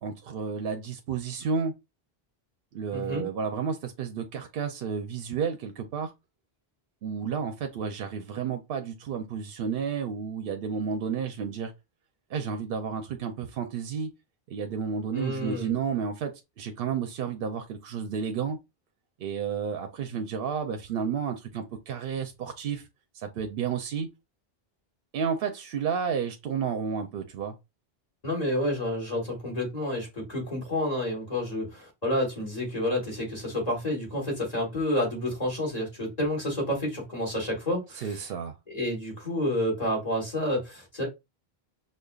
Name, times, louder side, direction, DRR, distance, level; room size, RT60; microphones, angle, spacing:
voice 1, 0.0-1.7 2.7-6.1 7.0-11.7 12.3-14.1 14.5-18.6 19.2-22.8 23.1-24.1 25.1-27.5 38.0-38.5, right 6 dB, 70° right, 0.7 m, -31 dB
voice 2, 2.9-3.3 15.1-15.7 28.2-38.2 38.7-41.1, left 1 dB, 40° left, 1.5 m, -29 dB
5.1 x 2.2 x 2.3 m
omnidirectional pair, 1.0 m